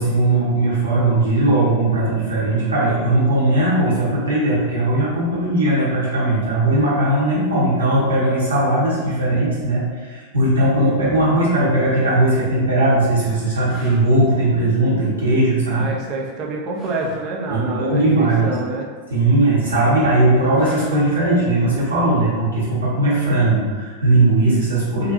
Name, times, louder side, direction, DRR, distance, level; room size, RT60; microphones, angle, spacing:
voice 1, 0.0-15.8 17.5-18.5 19.1-25.1, right 2 dB, 75° right, -8 dB, 1.0 m, -18 dB
sound 1, 12.2-12.3 12.9-13.0 13.6-14.1 16.7-17.3 20.5-21.2 24.1-24.3, right 1 dB, ahead, 0.8 m, -39 dB
voice 2, 15.7-18.9, right 3 dB, 40° right, -1 dB, 0.5 m, -27 dB
2.5 x 2.3 x 2.6 m, 1.5 s
figure-of-eight pair, 90°, 0 cm